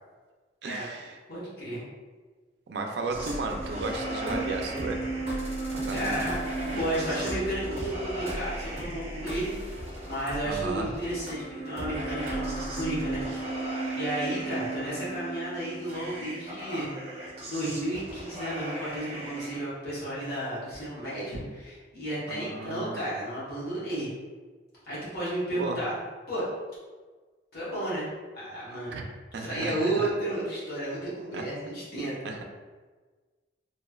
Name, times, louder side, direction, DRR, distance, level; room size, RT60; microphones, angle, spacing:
voice 1, 0.6-1.2 2.7-5.0 5.7-6.2 10.4-10.9 22.3-23.0 25.5-25.8 28.9-29.0 29.3-30.1 31.3-31.5 32.2-32.4, right 3 dB, 65° right, 3 dB, 0.4 m, -34 dB
voice 2, 1.3-1.8 5.9-9.5 10.0-13.2 13.9-16.9 17.5-24.1 24.8-26.0 26.3-26.4 27.5-28.1 28.3-29.0 29.4-32.1, right 1 dB, 55° left, -10 dB, 1.1 m, -32 dB
sound 1, 3.1-19.6, right 2 dB, 35° right, 0.7 m, -35 dB
3.0 x 2.8 x 2.3 m, 1.4 s
head